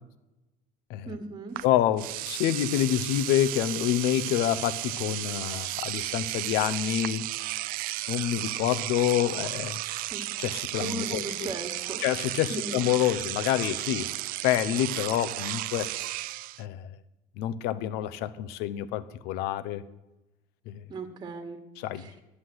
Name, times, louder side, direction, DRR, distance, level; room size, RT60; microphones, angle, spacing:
voice 1, 1.0-1.6 10.1-10.3 10.8-12.0 12.5-12.8 20.9-21.6 22.0-22.2, right 3 dB, 25° right, 6 dB, 1.6 m, -37 dB
voice 2, 1.6-7.3 8.1-9.8 10.4-11.5 12.0-14.1 14.4-15.9 16.6-16.9 17.4-19.8 20.7-20.8 21.8-22.1, left 12 dB, 85° left, 14 dB, 0.8 m, -27 dB
Engine / Domestic sounds home sounds, 1.6-1.7 2.0-16.6, right 17 dB, 60° right, 0.4 m, -34 dB
11.5 x 8.6 x 7.8 m, 0.97 s
cardioid pair, 155°, 17 cm